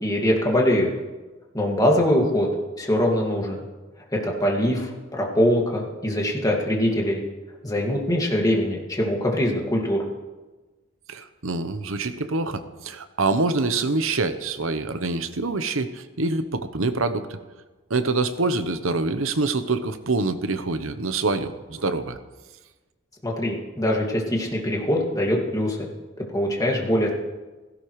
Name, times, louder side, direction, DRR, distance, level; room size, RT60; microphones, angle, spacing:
voice 1, 0.0-0.9 1.5-2.5 2.8-3.6 4.1-7.2 7.6-10.0 23.2-25.9 26.2-27.1, equal, 15° left, -1 dB, 2.1 m, -23 dB
voice 2, 11.1-17.4 17.9-22.2, right 3 dB, 75° right, 10 dB, 0.9 m, -25 dB
16.5 x 16.5 x 3.2 m, 1.2 s
head